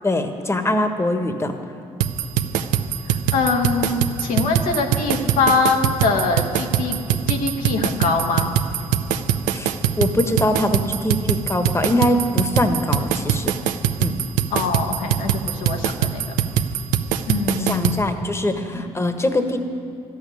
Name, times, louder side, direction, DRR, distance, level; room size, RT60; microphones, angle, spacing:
voice 1, 0.0-1.5 9.5-13.5 14.0-14.1 17.5-19.6, left 1 dB, 20° left, 7 dB, 1.3 m, -22 dB
sound 1, 2.0-18.0, right 10 dB, 90° right, 0.5 m, -22 dB
voice 2, 3.1-7.0 7.3-8.5 14.5-16.2 17.3-18.2 18.7-18.8, left 4 dB, 80° left, 2 dB, 1.4 m, -23 dB
13.0 x 6.4 x 9.5 m, 2.6 s
supercardioid pair, 50°, 13 cm